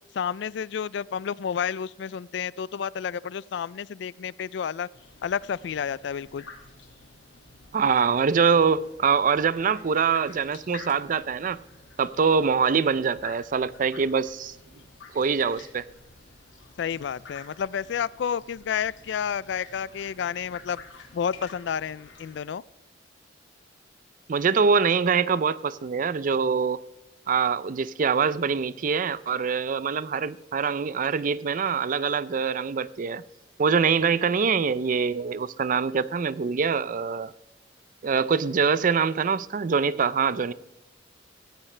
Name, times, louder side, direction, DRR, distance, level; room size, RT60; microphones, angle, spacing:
voice 1, 0.1-4.9 5.2-6.4 16.8-20.8 21.1-22.6, left 7 dB, 70° left, 0.3 m, -30 dB
sound 1, 4.9-22.4, left 4 dB, 90° left, 2.1 m, -49 dB
voice 2, 7.7-11.6 12.0-14.5 15.1-15.9 24.3-26.8 27.3-33.2 33.6-37.3 38.0-40.5, right 6 dB, 45° right, 0.4 m, -24 dB
17.0 x 15.0 x 3.3 m
head